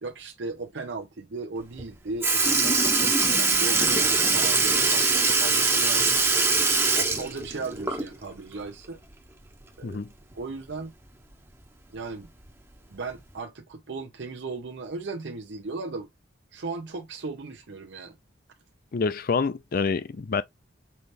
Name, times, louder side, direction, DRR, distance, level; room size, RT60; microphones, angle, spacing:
voice 1, 0.0-6.3 7.0-9.0 9.8-10.0 10.3-10.9 11.9-12.3 12.9-16.1 16.5-18.1, right 3 dB, 70° right, 0.7 m, -36 dB
Sink (filling or washing) / Liquid, 1.8-1.9 2.2-8.3 8.7-8.8 10.3-10.4 11.3-11.4 12.3-12.5 13.3-13.4, right 3 dB, 15° right, 1.0 m, -22 dB
voice 2, 18.9-20.4, left 4 dB, 50° left, 0.5 m, -27 dB
5.6 x 3.3 x 2.6 m
head